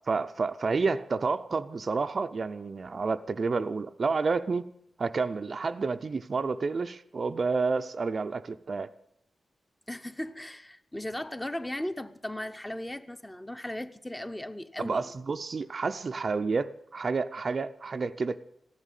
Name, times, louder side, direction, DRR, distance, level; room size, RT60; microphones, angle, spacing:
voice 1, 0.1-4.7 5.0-8.9 14.8-18.4, right 4 dB, 45° right, 10 dB, 0.5 m, -30 dB
voice 2, 9.9-15.1, left 1 dB, 10° left, 9 dB, 0.8 m, -37 dB
14.5 x 11.5 x 8.2 m, 0.73 s
wide cardioid pair, 110°, 0 cm